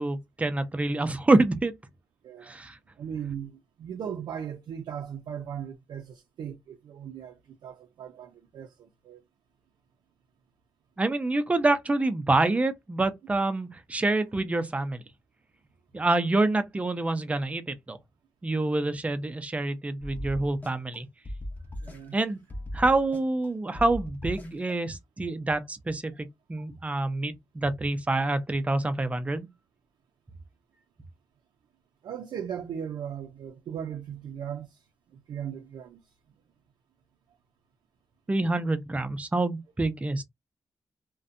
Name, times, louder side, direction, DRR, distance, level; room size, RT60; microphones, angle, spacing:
voice 1, 0.0-1.7 2.4-2.8 11.0-15.0 15.9-18.0 18.4-21.1 22.1-22.4 22.7-29.5 38.3-40.2, right 2 dB, 20° right, 0.5 m, -27 dB
voice 2, 2.2-2.6 3.0-9.2 21.8-22.2 26.6-26.7 32.0-36.0, right 8 dB, 85° right, 0.4 m, -38 dB
sound 1, 20.0-21.0 21.3-22.2 22.5-23.5 23.8-24.7, left 1 dB, 25° left, 0.6 m, -38 dB
2.6 x 2.1 x 2.5 m
wide cardioid pair, 130°, 7 cm